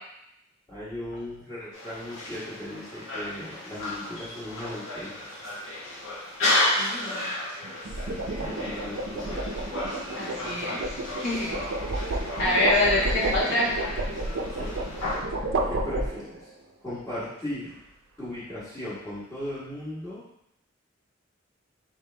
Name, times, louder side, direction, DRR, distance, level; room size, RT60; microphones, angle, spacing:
voice 1, 0.7-5.1 6.8-7.0 7.8-9.4 12.4-12.8 14.5-14.8 15.6-16.5 16.8-17.7 18.2-20.2, left 1 dB, 15° left, -13 dB, 1.2 m, -37 dB
sound 1, 1.7-15.2, left 1 dB, 90° left, 1.3 m, -33 dB
sound 2, 2.2-2.5 7.6-16.5, right 2 dB, 75° right, 0.5 m, -31 dB
voice 2, 6.8-7.2 8.4-8.5 10.1-10.8 11.1-11.9 12.4-13.7, left 1 dB, 60° left, -7 dB, 1.6 m, -26 dB
4.2 x 3.3 x 3.2 m, 0.79 s
head